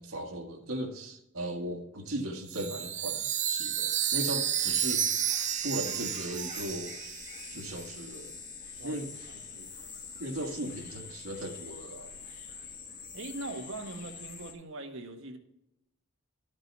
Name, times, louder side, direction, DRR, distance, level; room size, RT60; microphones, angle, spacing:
voice 1, 0.0-5.0 5.6-7.0 7.5-8.3 8.8-9.1 10.2-12.2, right 1 dB, 85° right, 0 dB, 1.5 m, -37 dB
sound 1, 2.1-2.2 2.4-14.5, left 5 dB, 40° left, 1.4 m, -46 dB
Chime, 2.5-8.0, right 9 dB, 35° right, 0.6 m, -31 dB
voice 2, 9.3-9.7 13.1-15.4, right 2 dB, 70° right, 4 dB, 1.4 m, -41 dB
12.0 x 5.4 x 4.1 m, 0.84 s
head